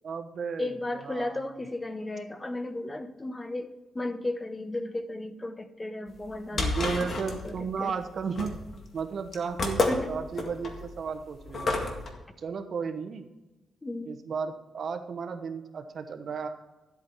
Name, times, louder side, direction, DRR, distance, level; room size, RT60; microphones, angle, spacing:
voice 1, 0.0-1.4 6.5-8.5 8.9-11.7 12.4-13.3 14.1-16.5, right 5 dB, 55° right, 7 dB, 1.1 m, -34 dB
voice 2, 0.6-6.7 7.4-7.9 9.9-10.1 13.8-14.2, left 2 dB, 20° left, 10 dB, 0.8 m, -34 dB
sound 1, 6.1-12.1, left 2 dB, 45° left, 1.9 m, -31 dB
13.0 x 8.4 x 4.6 m, 1.1 s
cardioid pair, 110°, 0 cm